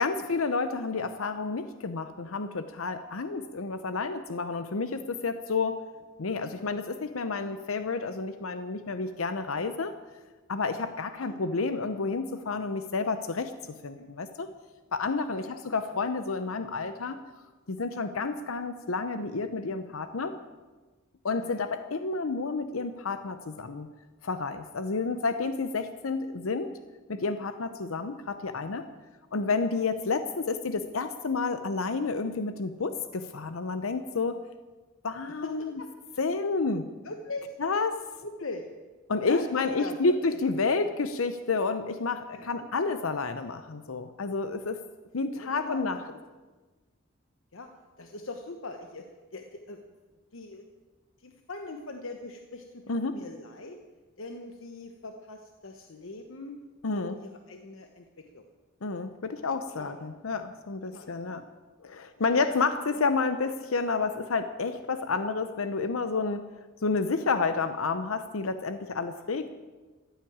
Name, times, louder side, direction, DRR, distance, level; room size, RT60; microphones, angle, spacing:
voice 1, 0.0-5.8 6.2-9.9 10.5-13.5 13.8-14.5 14.9-17.2 17.7-20.4 21.2-23.9 24.2-26.7 27.1-28.9 29.3-34.4 35.0-35.7 36.2-36.8 37.6-38.0 39.1-44.8 45.1-46.0 52.9-53.2 56.8-57.2 58.8-61.4 61.8-66.4 66.8-69.5, left 4 dB, 90° left, 10 dB, 0.8 m, -30 dB
voice 2, 21.4-21.7 25.0-25.2 35.4-35.9 37.0-37.6 38.2-38.6 39.3-40.4 42.3-42.7 45.3-46.2 47.5-47.7 48.0-49.0 49.3-49.8 50.3-50.6 51.2-52.8 53.1-53.8 54.2-56.6 56.9-58.4 59.8-59.9 60.9-61.4 62.5-62.6 63.0-63.1 67.2-67.3, left 2 dB, 70° left, 5 dB, 1.1 m, -41 dB
15.0 x 9.0 x 8.7 m, 1.3 s
head